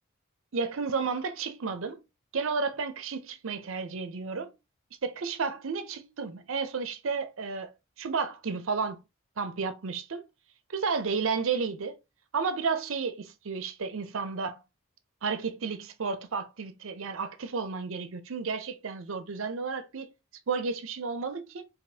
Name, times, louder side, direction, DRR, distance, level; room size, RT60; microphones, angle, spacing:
voice 1, 0.5-2.0 2.3-4.5 5.0-7.7 8.0-9.0 9.4-10.3 10.7-12.0 12.3-14.6 15.2-20.1 20.5-21.7, right 5 dB, 70° right, 0.6 m, -32 dB
5.0 x 2.4 x 2.7 m
head